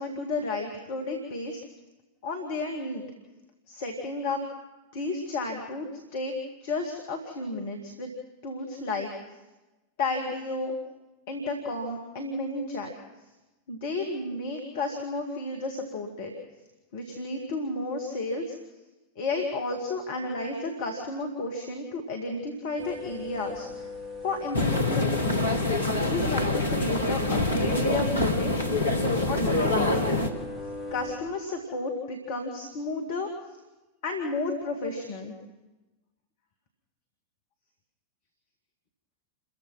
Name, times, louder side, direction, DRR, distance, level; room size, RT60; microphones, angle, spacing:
voice 1, 0.0-1.6 2.2-3.0 3.7-4.4 4.9-5.9 6.1-8.1 8.4-9.1 10.0-10.8 11.3-12.9 13.7-16.3 16.9-18.6 19.2-23.7 24.2-25.2 25.8-28.6 29.2-30.2 30.9-33.3 34.0-35.3, left 2 dB, 55° left, 3 dB, 2.4 m, -32 dB
sound 1, 22.8-31.2, left 2 dB, 15° right, 3.8 m, -41 dB
sound 2, 24.5-30.3, left 2 dB, 80° left, 1.8 m, -25 dB
29.0 x 15.0 x 6.0 m, 1.1 s
figure-of-eight pair, 90°, 0 cm